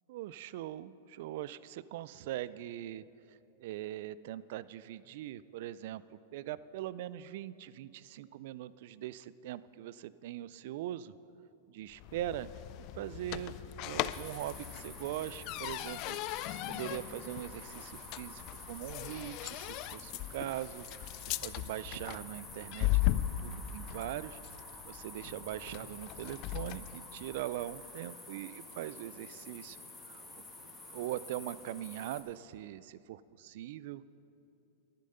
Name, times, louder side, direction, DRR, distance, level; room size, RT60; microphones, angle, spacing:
voice 1, 0.1-3.0 3.6-6.0 6.3-11.1 11.7-12.5 12.9-18.4 18.7-21.1 21.4-24.4 24.8-29.8 30.1-30.2 30.9-34.0, right 13 dB, 65° right, 18 dB, 0.3 m, -41 dB
sound 1, 11.9-27.0, left 15 dB, 45° left, 0.3 m, -38 dB
sound 2, 14.1-32.2, left 2 dB, 10° left, 2.0 m, -50 dB
11.5 x 11.0 x 5.5 m, 2.8 s
hypercardioid pair, 125°, 0 cm